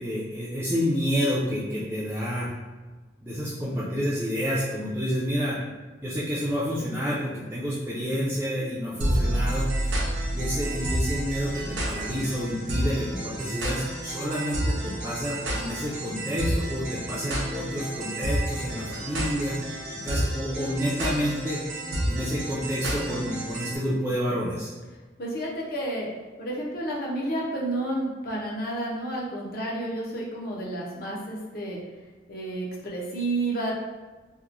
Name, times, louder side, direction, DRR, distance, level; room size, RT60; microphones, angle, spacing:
voice 1, 0.0-2.5 3.2-5.6 6.0-9.9 10.3-19.7 20.0-21.6 22.1-24.7, equal, 10° right, -9 dB, 0.3 m, -29 dB
sound 1, 9.0-23.8, right 1 dB, 75° right, 0.6 m, -30 dB
voice 2, 25.2-26.1 26.4-31.8 32.3-33.7, right 1 dB, 50° left, -3 dB, 0.5 m, -30 dB
2.9 x 2.1 x 2.5 m, 1.3 s
head